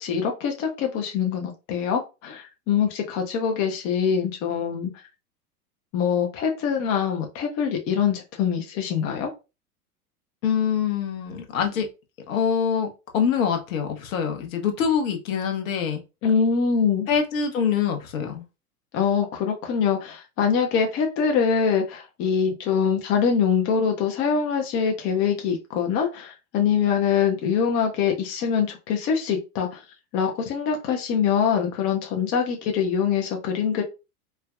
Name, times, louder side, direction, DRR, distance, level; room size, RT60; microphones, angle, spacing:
voice 1, 0.0-4.9 5.9-9.3 16.2-17.1 18.9-29.8 30.1-33.8, left 7 dB, 30° left, 3 dB, 0.6 m, -24 dB
voice 2, 10.4-11.9 12.3-12.9 13.1-16.0 17.1-18.5, left 7 dB, 60° left, 4 dB, 0.9 m, -24 dB
3.3 x 2.1 x 2.3 m, 0.28 s
figure-of-eight pair, 90°, 45 cm